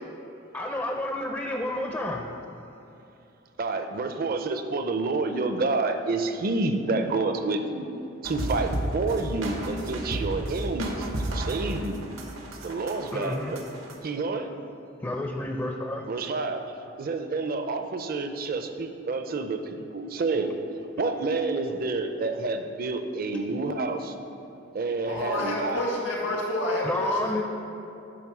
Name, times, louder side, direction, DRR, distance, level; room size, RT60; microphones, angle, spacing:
voice 1, 0.5-2.3 13.1-13.6 15.0-16.1 26.8-27.4, left 1 dB, 15° left, 2 dB, 0.4 m, -30 dB
voice 2, 3.6-7.9 8.2-12.0 12.6-13.7 14.0-14.5 16.1-16.6 17.0-20.5 21.0-24.1 24.7-25.8, right 3 dB, 50° right, 7 dB, 0.5 m, -29 dB
sound 1, 8.2-13.9, right 1 dB, 85° right, 1.1 m, -32 dB
voice 3, 25.1-27.4, left 1 dB, 80° left, -3 dB, 1.9 m, -29 dB
10.0 x 3.8 x 6.1 m, 2.8 s
head